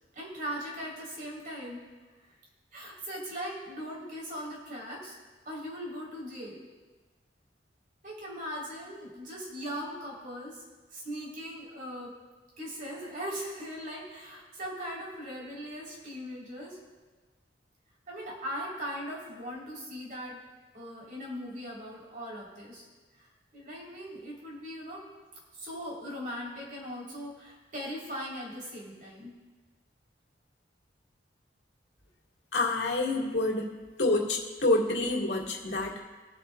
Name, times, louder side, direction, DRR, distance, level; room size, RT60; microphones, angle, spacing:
voice 1, 0.1-1.9 2.7-5.2 5.5-6.7 8.0-10.6 10.9-12.1 12.6-16.8 18.1-20.4 20.7-22.9 23.1-25.0 25.5-29.3, equal, 50° right, -4 dB, 3.9 m, -39 dB
voice 2, 32.5-33.7 34.0-36.0, left 2 dB, 75° left, -1 dB, 2.0 m, -27 dB
24.5 x 8.5 x 2.4 m, 1.3 s
head